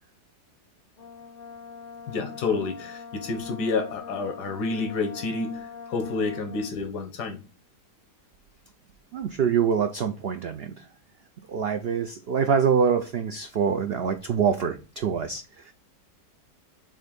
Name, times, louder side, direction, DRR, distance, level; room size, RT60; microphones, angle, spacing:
Brass instrument, 1.0-6.8, left 5 dB, 45° left, 0.8 m, -43 dB
voice 1, 2.1-7.4, left 4 dB, 80° left, 5 dB, 1.6 m, -29 dB
voice 2, 9.1-10.8 11.5-15.7, right 7 dB, 85° right, 8 dB, 0.5 m, -25 dB
7.5 x 2.7 x 5.1 m, 0.32 s
omnidirectional pair, 1.7 m